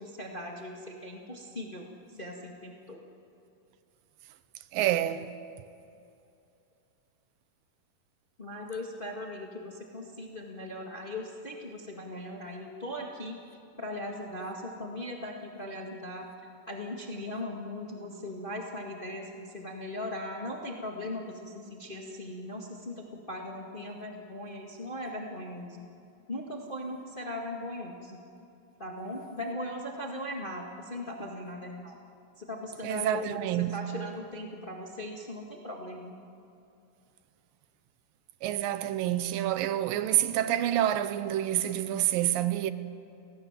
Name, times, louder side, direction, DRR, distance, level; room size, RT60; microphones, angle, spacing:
voice 1, 0.0-3.0 8.4-13.4 13.8-16.3 16.7-25.8 26.3-28.2 28.8-32.0 32.4-36.2, left 1 dB, 20° left, 1.3 m, -39 dB
voice 2, 4.7-5.3 32.8-33.8 38.4-42.7, right 12 dB, 85° right, 2.5 m, -28 dB
30.0 x 18.5 x 7.4 m
omnidirectional pair, 4.0 m